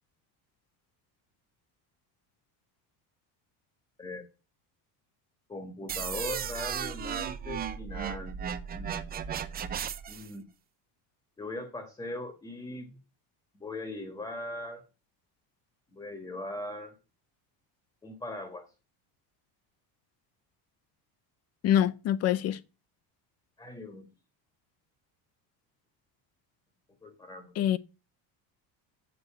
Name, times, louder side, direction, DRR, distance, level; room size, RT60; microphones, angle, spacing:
voice 1, 5.5-8.3 8.7-9.1 10.1-10.5 11.4-12.9 13.6-14.8 15.9-16.9 18.0-18.7 23.6-24.1 27.0-27.5, left 1 dB, 10° left, 1.4 m, -40 dB
sound 1, 5.9-10.3, right 8 dB, 25° right, 0.6 m, -35 dB
voice 2, 21.6-22.6 27.6-27.8, left 11 dB, 40° left, 0.6 m, -25 dB
8.1 x 6.9 x 7.3 m
cardioid pair, 175°, 41 cm